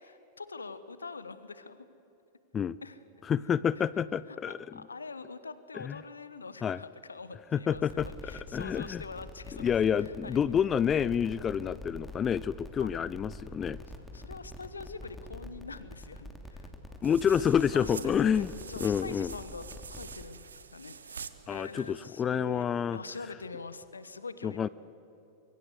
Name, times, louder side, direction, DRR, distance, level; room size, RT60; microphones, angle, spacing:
voice 1, 0.0-1.9 2.8-3.0 3.7-3.9 4.1-9.7 10.0-10.5 12.8-13.0 14.1-17.0 17.7-18.4 18.7-22.7 22.9-24.7, left 4 dB, 75° left, 14 dB, 1.2 m, -44 dB
voice 2, 3.3-4.6 5.7-6.0 6.6-6.8 7.5-9.0 9.6-13.8 17.0-18.5 18.8-19.3 21.5-23.0 24.4-24.7, left 8 dB, 25° left, 19 dB, 0.5 m, -28 dB
sound 1, 7.7-20.2, left 1 dB, 5° left, 3.0 m, -46 dB
sound 2, 17.0-22.1, right 6 dB, 70° right, 1.0 m, -47 dB
24.5 x 23.0 x 8.1 m, 2.9 s
figure-of-eight pair, 90°, 0 cm